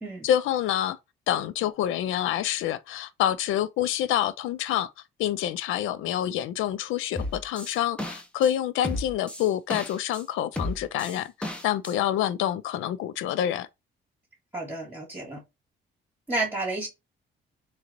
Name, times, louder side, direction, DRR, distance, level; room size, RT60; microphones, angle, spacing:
voice 1, 0.2-1.0 1.3-4.9 5.2-13.7, left 11 dB, 85° left, 0.5 m, -27 dB
sound 1, 7.1-8.5 8.8-10.2 10.6-11.9, left 1 dB, 5° left, 0.8 m, -33 dB
voice 2, 14.5-15.4 16.3-16.9, right 2 dB, 10° right, 2.1 m, -31 dB
3.7 x 3.2 x 2.8 m
cardioid pair, 90°, 20 cm